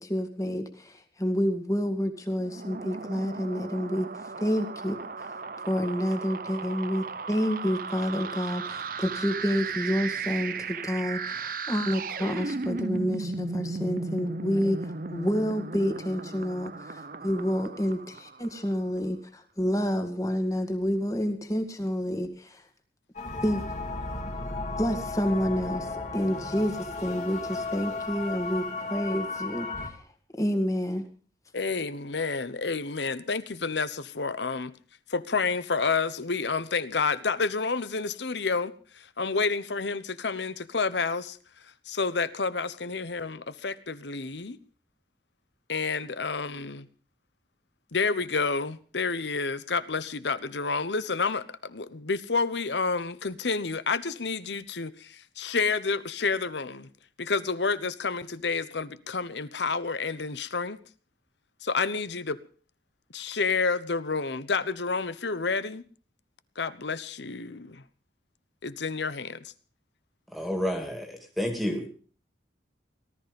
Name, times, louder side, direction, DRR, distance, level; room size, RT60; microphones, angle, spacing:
voice 1, 0.0-4.1 4.4-22.6 23.4-23.6 24.8-30.0 30.4-31.0, equal, 20° left, 1.9 m, -29 dB
sound 1, 2.4-18.7, right 4 dB, 50° right, 0.8 m, -36 dB
sound 2, 23.2-29.9, left 3 dB, 40° left, 2.4 m, -34 dB
voice 2, 31.5-34.7 35.1-41.4 41.9-44.6 45.7-46.9 47.9-56.9 57.2-60.8 61.6-62.4 63.1-65.8 66.6-67.8 68.6-69.5, left 4 dB, 75° left, 1.0 m, -29 dB
voice 3, 70.3-71.9, equal, ahead, 2.3 m, -30 dB
18.5 x 13.5 x 5.3 m
head